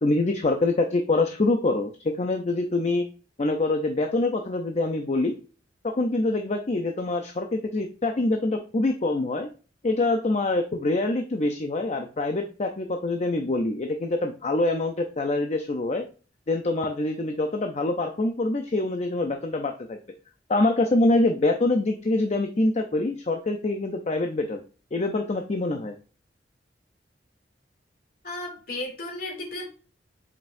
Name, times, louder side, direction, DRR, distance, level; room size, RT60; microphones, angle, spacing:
voice 1, 0.0-3.0 3.4-5.4 5.8-9.5 9.8-16.0 16.5-20.0 20.5-24.6 24.9-25.9, left 2 dB, 40° left, 5 dB, 0.6 m, -25 dB
voice 2, 28.2-29.7, left 2 dB, 55° left, 0 dB, 2.7 m, -34 dB
7.9 x 5.3 x 2.6 m, 0.37 s
head